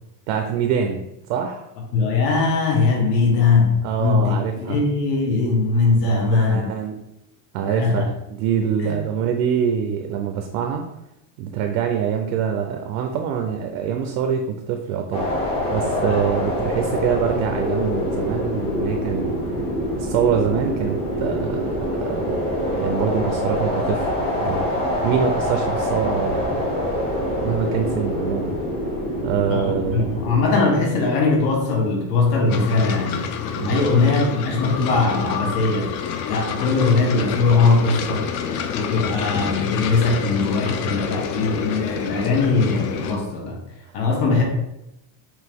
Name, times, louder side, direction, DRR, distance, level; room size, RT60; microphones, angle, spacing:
voice 1, 0.3-1.6 3.8-4.8 6.3-7.0 7.5-10.9 11.4-19.4 20.0-24.1 24.4-24.7 25.0-26.8 27.4-28.5 29.2-30.2 33.6-34.0, right 8 dB, 55° right, 4 dB, 0.5 m, -25 dB
voice 2, 1.9-4.4 4.7-6.7 7.8-8.1 8.8-8.9 16.0-16.3 29.5-33.3 33.7-35.9 36.2-38.2 38.7-43.6 43.9-44.4, left 4 dB, 90° left, -1 dB, 1.3 m, -20 dB
sound 1, 15.1-30.5, left 1 dB, 15° left, 0.3 m, -25 dB
sound 2, 32.5-43.2, left 7 dB, 70° left, 0.6 m, -28 dB
6.0 x 2.5 x 3.5 m, 0.88 s
cardioid pair, 175°, 48 cm